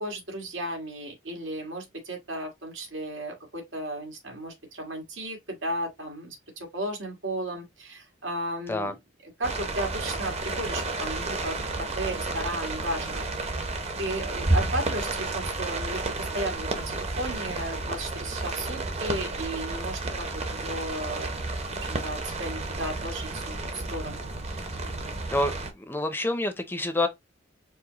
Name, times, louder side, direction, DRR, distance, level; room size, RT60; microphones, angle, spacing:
voice 1, 0.0-9.0 9.2-13.3 14.0-21.5 22.0-24.6, right 1 dB, 85° right, 1.8 m, -34 dB
sound 1, 9.4-25.7, right 2 dB, 35° right, 0.7 m, -31 dB
voice 2, 25.3-27.1, left 1 dB, 10° left, 0.5 m, -27 dB
4.7 x 2.1 x 4.0 m
head